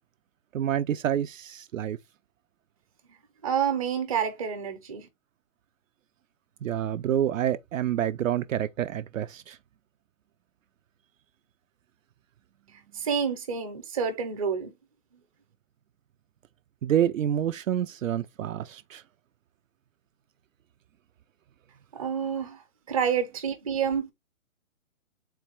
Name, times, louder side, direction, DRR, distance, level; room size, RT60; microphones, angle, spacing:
voice 1, 0.5-2.0 6.6-9.6 16.8-19.0, right 10 dB, 70° right, 0.5 m, -28 dB
voice 2, 3.4-5.1 12.9-14.7 22.0-24.1, right 7 dB, 25° right, 0.7 m, -28 dB
4.0 x 2.2 x 4.4 m
hypercardioid pair, 160°, 41 cm